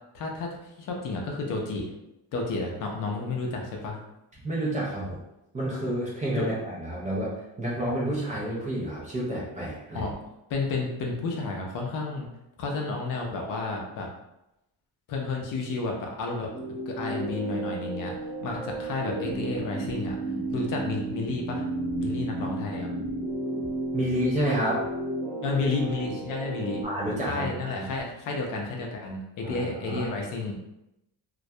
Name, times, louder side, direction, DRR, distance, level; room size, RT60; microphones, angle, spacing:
voice 1, 0.1-1.9 2.3-4.0 6.4-6.5 9.9-10.2 10.5-12.3 12.6-14.1 15.1-16.5 16.9-18.1 18.4-20.2 20.5-21.6 22.0-22.9 25.4-26.8 27.3-30.6, left 3 dB, 55° left, 0 dB, 0.5 m, -31 dB
voice 2, 4.4-5.2 5.5-10.1 23.9-24.9 26.8-27.9 29.4-30.1, right 1 dB, 20° right, -7 dB, 0.4 m, -29 dB
sound 1, 16.5-26.9, right 2 dB, 5° left, 0.7 m, -33 dB
2.2 x 2.1 x 2.6 m, 0.88 s
cardioid pair, 175°, 39 cm